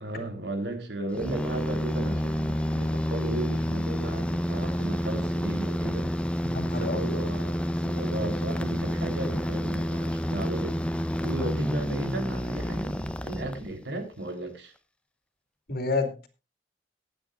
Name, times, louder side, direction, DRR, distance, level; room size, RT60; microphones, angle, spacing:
voice 1, 0.0-6.1 6.6-14.7, right 2 dB, 90° right, 5 dB, 3.8 m, -35 dB
sound 1, 1.1-14.0, equal, 5° left, 0.8 m, -29 dB
voice 2, 6.5-7.2 15.7-16.3, left 3 dB, 60° left, 7 dB, 2.4 m, -29 dB
23.0 x 8.9 x 2.5 m, 0.29 s
head